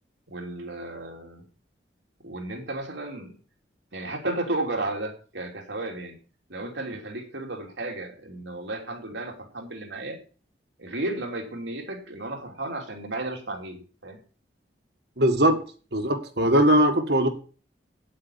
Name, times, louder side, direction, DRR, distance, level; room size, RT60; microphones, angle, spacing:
voice 1, 0.3-1.4 2.2-3.3 3.9-6.2 6.5-10.2 10.8-14.2, right 2 dB, 85° right, 2 dB, 3.1 m, -33 dB
voice 2, 15.2-15.6 15.9-17.3, right 1 dB, 65° right, 6 dB, 1.8 m, -20 dB
9.2 x 8.5 x 7.2 m, 0.39 s
head